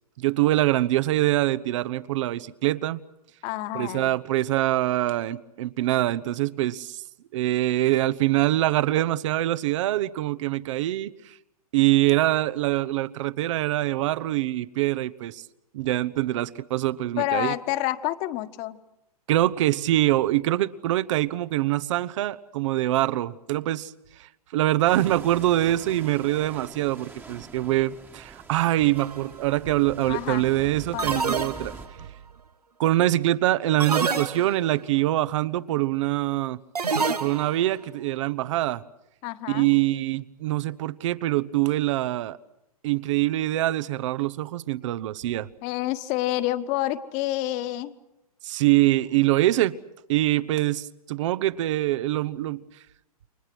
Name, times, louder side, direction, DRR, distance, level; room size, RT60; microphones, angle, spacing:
voice 1, 0.2-3.0 3.7-7.0 7.3-11.3 11.7-15.4 15.7-17.5 19.3-23.9 24.5-31.7 32.0-32.1 32.8-36.6 37.2-38.8 39.5-42.4 42.8-45.5 48.4-49.7 50.1-52.6, right 15 dB, 55° right, 1.0 m, -24 dB
voice 2, 3.4-4.1 17.2-18.8 30.1-30.5 30.9-31.3 39.2-39.7 45.6-47.9, left 15 dB, 40° left, 1.5 m, -28 dB
sound 1, 24.8-31.9, right 4 dB, 10° right, 1.5 m, -44 dB
sound 2, 29.0-29.3 31.0-32.0 33.8-34.8 36.8-37.7, right 5 dB, 90° right, 1.6 m, -28 dB
29.5 x 24.5 x 6.2 m
hypercardioid pair, 115°, 19 cm